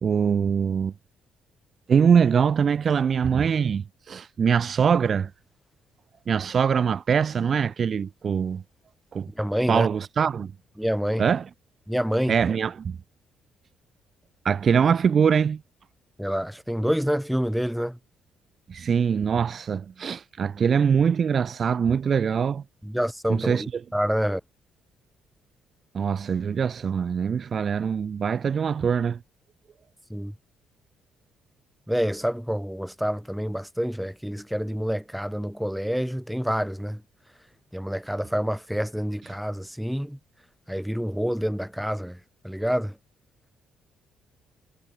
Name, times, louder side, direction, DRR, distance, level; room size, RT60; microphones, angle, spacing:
voice 1, 0.0-0.9 1.9-5.3 6.3-8.6 9.1-9.3 9.7-10.5 11.2-11.4 12.3-13.0 14.4-15.6 18.7-22.6 23.3-23.6 25.9-29.2, right 7 dB, 50° right, 1.2 m, -23 dB
voice 2, 9.3-9.9 10.8-11.3 11.9-12.3 16.2-18.0 22.8-24.4 30.1-30.3 31.9-37.0 37.7-40.2 40.7-43.0, equal, ahead, 7.8 m, -27 dB
supercardioid pair, 55°, 0 cm